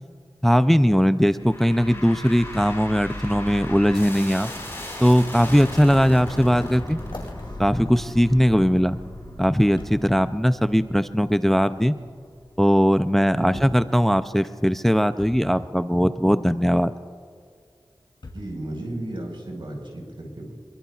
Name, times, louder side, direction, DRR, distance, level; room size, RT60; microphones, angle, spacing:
voice 1, 0.4-4.5 5.0-7.0 7.6-9.0 9.4-11.9 12.6-16.9, equal, 5° left, 12 dB, 0.4 m, -19 dB
sound 1, 1.4-12.7, left 1 dB, 30° left, 4.8 m, -37 dB
sound 2, 7.0-8.9 9.8-10.1 11.3-11.4 12.7-12.8 13.5-13.9 15.2-15.4 17.1-17.2 18.2-18.6 19.3-19.5, left 2 dB, 75° left, 2.7 m, -42 dB
voice 2, 13.3-13.7 18.3-20.5, right 1 dB, 75° right, 0 dB, 4.6 m, -34 dB
27.0 x 22.0 x 2.4 m, 2.1 s
wide cardioid pair, 70°, 9 cm